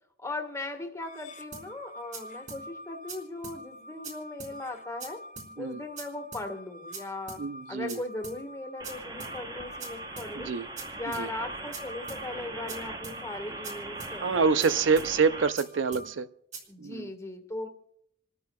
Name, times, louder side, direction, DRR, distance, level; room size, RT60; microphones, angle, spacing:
voice 1, 0.2-5.2 5.6-7.4 7.7-10.5 10.9-14.8 16.7-17.7, left 2 dB, 15° left, 4 dB, 1.6 m, -38 dB
sound 1, 1.0-16.1, equal, 40° left, 1.0 m, -47 dB
sound 2, 1.5-1.7 2.1-2.2 2.5-2.6 3.1-3.2 3.4-3.6 4.0-4.1 4.4-4.5 5.0-5.1 5.4-5.5 6.0-6.1 6.3-6.5 6.9-7.0 7.3-7.4 7.9-8.0 8.2-8.4 8.8-8.9 9.2-9.3 9.8-9.9 10.2-10.3 10.8-10.9 11.1-11.3 11.7-11.8 12.1-12.2 12.7-12.8 13.0-13.2 13.6-13.7 14.0-14.1 14.6-14.7 15.0-15.1 15.6-15.7 15.9-16.1 16.5-16.6, right 4 dB, 40° right, 3.9 m, -41 dB
voice 2, 7.4-8.0 10.3-10.7 11.2-11.3 14.2-16.3 16.8-17.1, right 5 dB, 70° right, 13 dB, 0.5 m, -26 dB
sound 3, 8.8-15.5, right 2 dB, 25° right, 0.9 m, -41 dB
28.5 x 13.5 x 2.3 m, 0.72 s
head